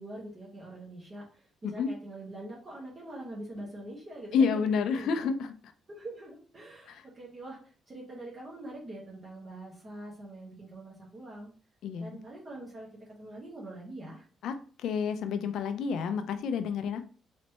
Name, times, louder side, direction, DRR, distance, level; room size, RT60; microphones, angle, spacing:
voice 1, 0.0-5.3 5.9-7.6 7.9-11.5 12.0-12.9 13.2-14.3, right 1 dB, 35° right, -4 dB, 1.6 m, -44 dB
voice 2, 4.3-5.5 6.9-7.0 11.8-12.2 14.4-17.0, left 6 dB, 75° left, 9 dB, 0.5 m, -29 dB
4.2 x 3.2 x 3.0 m, 0.40 s
cardioid pair, 90°, 0 cm